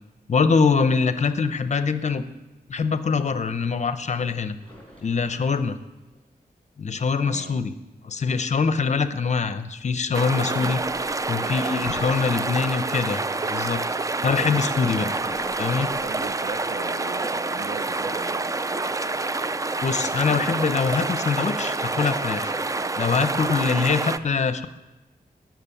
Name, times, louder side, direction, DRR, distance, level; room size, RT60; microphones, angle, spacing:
voice 1, 0.3-2.3 2.7-4.5 5.0-5.8 6.8-7.7 8.0-10.8 11.3-13.2 13.5-13.8 14.2-15.1 15.6-15.9 19.8-22.6 23.0-24.7, left 5 dB, 45° left, 11 dB, 0.7 m, -23 dB
sound 1, 4.6-6.2 9.1-9.4 10.4-14.2 14.7-16.8 17.3-17.4 17.8-18.3, equal, 10° left, 5.6 m, -46 dB
voice 2, 7.2-7.7 10.5-11.0 11.3-11.9 14.4-14.5 15.8-18.5, right 5 dB, 65° right, 11 dB, 0.7 m, -39 dB
sound 2, 10.1-24.2, right 3 dB, 20° right, 0.4 m, -27 dB
14.0 x 6.1 x 9.8 m, 1.0 s
wide cardioid pair, 155°, 16 cm